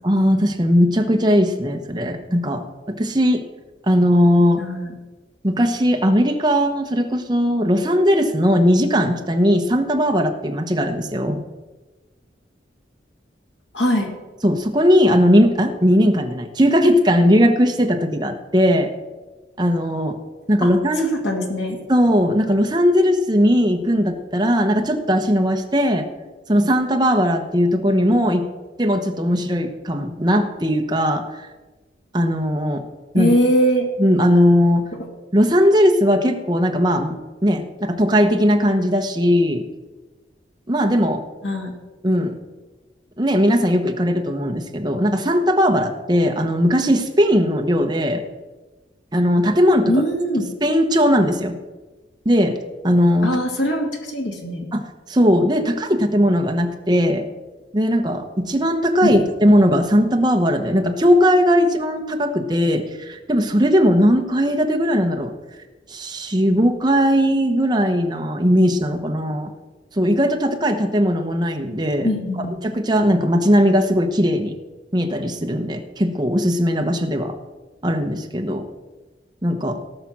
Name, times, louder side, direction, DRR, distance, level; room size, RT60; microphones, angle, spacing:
voice 1, 0.0-3.4 3.9-4.6 5.4-11.4 14.4-18.9 19.6-20.2 20.5-21.1 21.9-26.1 26.5-28.4 28.8-31.2 32.1-32.8 33.1-33.3 34.0-34.8 35.3-37.1 37.4-39.6 40.7-41.2 42.0-42.4 43.2-48.2 49.1-49.9 50.6-51.6 52.2-52.6 52.8-53.3 54.7-57.2 57.7-65.3 65.9-69.5 70.0-72.1 72.6-74.5 74.9-77.4 77.8-78.7 79.4-79.8, equal, 25° right, 4 dB, 1.1 m, -18 dB
voice 2, 4.6-4.9 13.7-14.1 20.6-20.7 21.1-21.8 33.1-33.9 41.4-41.7 49.9-50.5 53.2-54.7 59.0-59.2 72.0-72.5, equal, 80° left, 1 dB, 2.5 m, -21 dB
17.5 x 6.0 x 6.1 m, 1.2 s
head